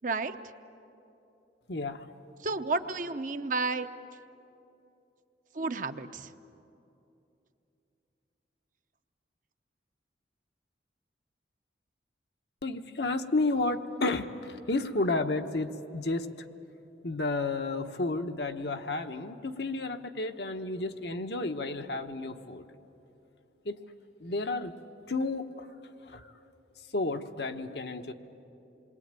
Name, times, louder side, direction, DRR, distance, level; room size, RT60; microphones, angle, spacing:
voice 1, 0.0-0.3 2.4-3.9 5.5-6.3, right 3 dB, 45° right, 8 dB, 0.8 m, -31 dB
voice 2, 1.7-2.1 12.6-16.3 17.0-22.6 23.6-23.8 24.2-24.7 25.1-25.7 26.1-26.2 26.9-28.1, left 2 dB, 65° left, 6 dB, 1.1 m, -31 dB
27.5 x 22.0 x 9.0 m, 2.8 s
head